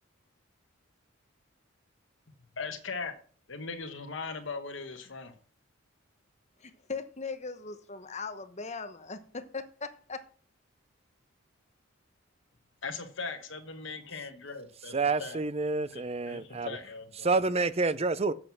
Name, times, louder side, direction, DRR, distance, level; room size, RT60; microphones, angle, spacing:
voice 1, 2.6-3.1 3.5-5.3 12.8-15.4 15.9-17.3, left 4 dB, 65° left, 1.3 m, -39 dB
voice 2, 6.6-10.2, left 4 dB, 35° left, 1.0 m, -39 dB
voice 3, 14.9-16.7 17.2-18.3, right 3 dB, 30° right, 0.5 m, -28 dB
7.7 x 7.5 x 6.0 m
head